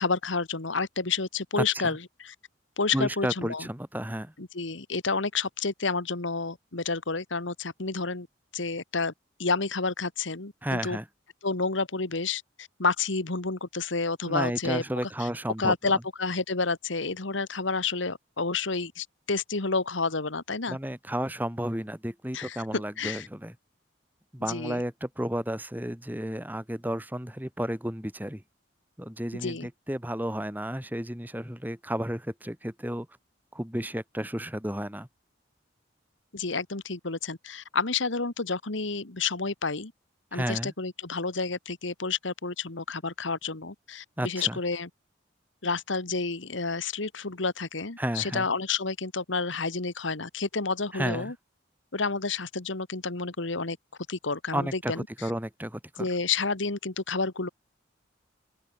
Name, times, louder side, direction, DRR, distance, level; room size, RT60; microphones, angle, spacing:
voice 1, 0.0-2.3 2.8-3.7 4.4-8.3 8.5-9.1 9.4-11.0 11.4-14.8 15.2-15.3 15.6-20.8 22.3-23.3 24.5-24.8 29.3-29.7 36.3-39.9 40.3-44.9 45.6-51.3 51.9-53.8 54.1-55.1 56.0-57.5, left 4 dB, 80° left, 1.8 m, -30 dB
voice 2, 1.6-2.0 2.9-4.3 10.6-11.1 14.3-16.0 20.7-23.5 24.3-28.4 29.0-33.1 33.5-35.1 40.3-40.7 44.2-44.6 48.0-48.5 50.9-51.3 54.5-54.9 55.2-56.1, right 1 dB, 10° right, 2.0 m, -32 dB
open air
head